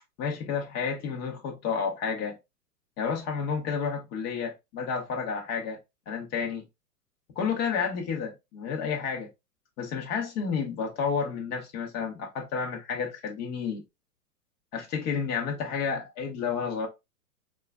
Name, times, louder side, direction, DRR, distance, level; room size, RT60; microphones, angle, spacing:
voice 1, 0.2-2.4 3.0-5.8 6.1-6.6 7.4-9.3 9.8-13.8 14.7-16.9, left 6 dB, 20° left, 0.8 m, -31 dB
4.6 x 2.3 x 2.3 m
hypercardioid pair, 125°, 48 cm